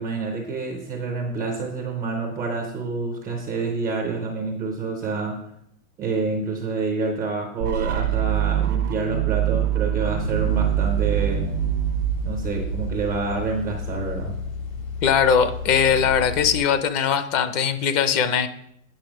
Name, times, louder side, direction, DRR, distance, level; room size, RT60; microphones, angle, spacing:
voice 1, 0.0-5.4 6.0-11.5 12.2-14.4, right 4 dB, 10° right, 2 dB, 0.3 m, -28 dB
sound 1, 7.6-13.5, right 12 dB, 90° right, 1.0 m, -24 dB
sound 2, 10.2-16.7, left 5 dB, 70° left, 3.7 m, -32 dB
voice 2, 15.0-18.5, left 7 dB, 30° left, 11 dB, 0.6 m, -20 dB
8.9 x 5.7 x 4.9 m, 0.75 s
supercardioid pair, 145°, 43 cm